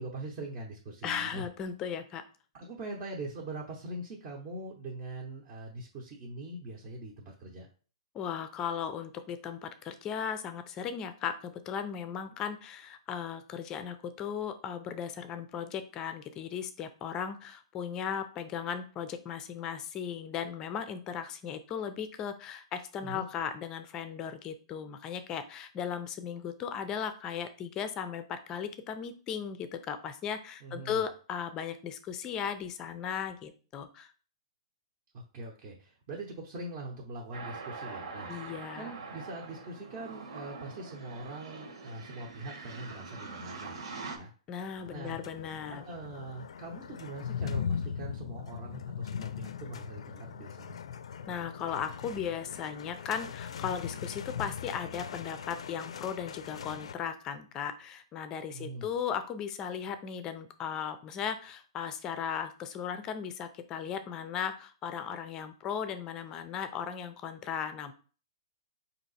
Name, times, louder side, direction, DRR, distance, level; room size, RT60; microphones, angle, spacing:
voice 1, 0.0-1.5 2.5-7.7 23.0-23.3 30.6-31.0 35.1-38.3 38.8-44.3 44.9-45.2 45.7-50.8 58.5-58.9, right 2 dB, 30° right, -2 dB, 0.8 m, -42 dB
voice 2, 1.0-2.2 8.1-34.1 38.3-38.9 44.5-45.9 51.2-67.9, left 8 dB, 20° left, 10 dB, 0.4 m, -37 dB
sound 1, 37.3-44.2, right 4 dB, 65° right, 1.4 m, -43 dB
sound 2, 44.6-56.9, left 7 dB, 80° left, 0.4 m, -40 dB
4.4 x 2.8 x 4.1 m, 0.39 s
hypercardioid pair, 160°, 3 cm